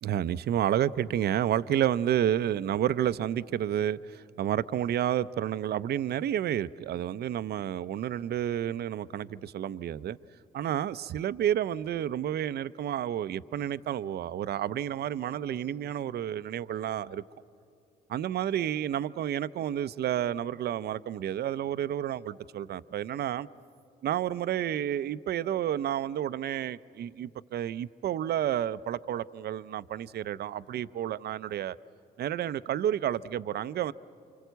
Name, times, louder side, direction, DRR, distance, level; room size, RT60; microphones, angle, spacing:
voice 1, 0.0-10.2 10.5-17.2 18.1-23.5 24.0-31.8 32.2-33.9, right 10 dB, 60° right, 0.6 m, -30 dB
28.5 x 25.0 x 8.1 m
hypercardioid pair, 50°, 19 cm